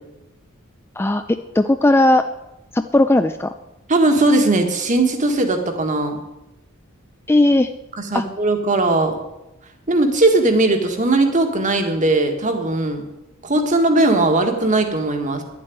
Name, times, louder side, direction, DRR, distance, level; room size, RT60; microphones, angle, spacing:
voice 1, 1.0-2.2 2.7-3.5 7.3-7.7 8.1-8.3, left 1 dB, 10° left, 9 dB, 0.4 m, -17 dB
voice 2, 3.9-6.2 8.1-9.1 9.9-13.0 13.4-15.4, right 2 dB, 35° right, 5 dB, 1.7 m, -18 dB
10.5 x 7.6 x 9.4 m, 0.94 s
head